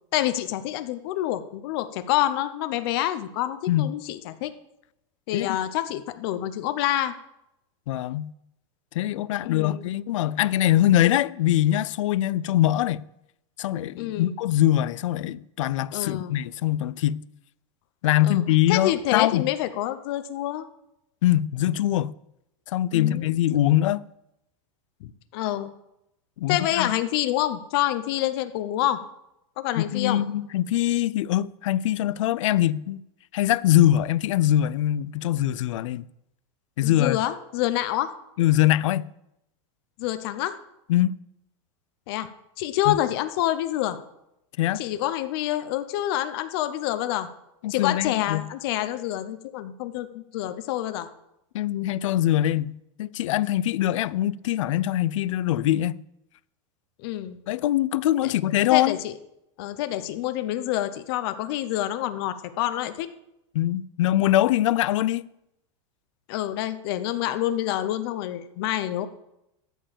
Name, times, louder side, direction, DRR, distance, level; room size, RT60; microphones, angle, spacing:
voice 1, 0.1-4.5 5.3-7.1 9.4-9.9 14.0-14.4 15.9-16.4 18.2-18.4 18.7-20.7 22.9-23.2 25.0-25.7 26.5-29.0 29.6-30.2 36.8-38.1 40.0-40.6 42.1-42.3 42.6-44.0 44.7-47.3 47.7-51.1 57.0-57.4 58.2-58.3 58.7-59.1 59.6-63.1 66.3-69.1, left 13 dB, 50° left, 0.8 m, -27 dB
voice 2, 7.9-8.3 8.9-13.0 13.6-17.2 18.0-19.5 21.2-22.1 22.7-24.0 26.4-26.9 29.8-33.0 33.3-36.0 36.8-37.2 38.4-39.1 40.9-41.2 42.9-43.0 44.6-44.8 47.6-48.4 51.5-56.0 57.5-59.0 63.5-65.2, left 13 dB, 80° left, 0.5 m, -23 dB
13.5 x 4.6 x 7.6 m
supercardioid pair, 165°, 16 cm